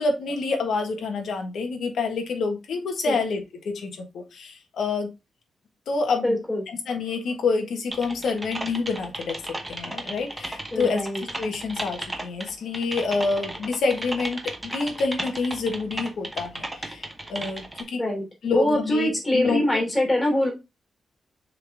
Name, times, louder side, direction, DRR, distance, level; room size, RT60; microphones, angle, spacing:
voice 1, 0.0-5.1 5.9-6.3 6.7-11.1 11.4-18.0 18.4-19.8, left 4 dB, 70° left, 5 dB, 1.5 m, -27 dB
voice 2, 6.2-6.6 10.7-11.2 18.0-18.2 18.5-20.5, left 1 dB, 15° left, 0 dB, 3.0 m, -23 dB
Typing, 7.9-17.8, right 1 dB, 10° right, 1.0 m, -35 dB
6.8 x 3.9 x 3.5 m, 0.24 s
wide cardioid pair, 165°, 0 cm